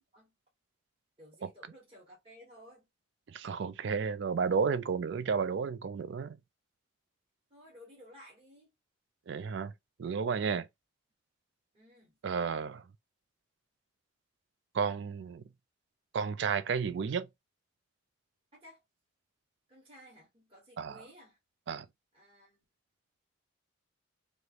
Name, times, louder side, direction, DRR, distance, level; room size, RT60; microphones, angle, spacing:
voice 1, 1.2-2.9 7.5-8.7 11.7-12.2 18.5-18.8 19.7-21.4 22.1-22.6, equal, 25° right, 1.2 m, -56 dB
voice 2, 3.3-6.4 9.3-9.7 10.0-10.7 12.2-12.8 14.7-15.4 16.1-17.3 20.8-21.0 21.7-21.9, right 6 dB, 60° right, 0.3 m, -32 dB
3.2 x 2.5 x 2.9 m
head